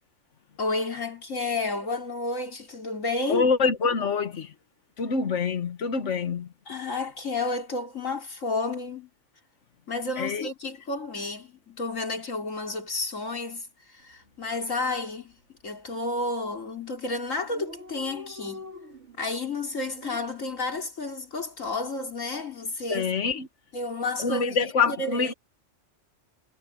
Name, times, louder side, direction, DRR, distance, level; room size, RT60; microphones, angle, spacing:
voice 1, 0.6-3.5 6.7-9.1 9.9-18.7 19.2-23.1 23.7-25.3, left 3 dB, 90° left, 4.0 m, -31 dB
voice 2, 3.3-4.5 5.0-6.5 10.2-10.5 22.9-23.5 24.2-25.3, left 5 dB, 70° left, 1.7 m, -25 dB
Dog, 14.0-14.3 14.6-14.7 14.9-15.6 16.2-16.5 16.8-16.9 17.0-17.1 17.3-20.2, left 2 dB, 65° right, 2.0 m, -44 dB
omnidirectional pair, 1.3 m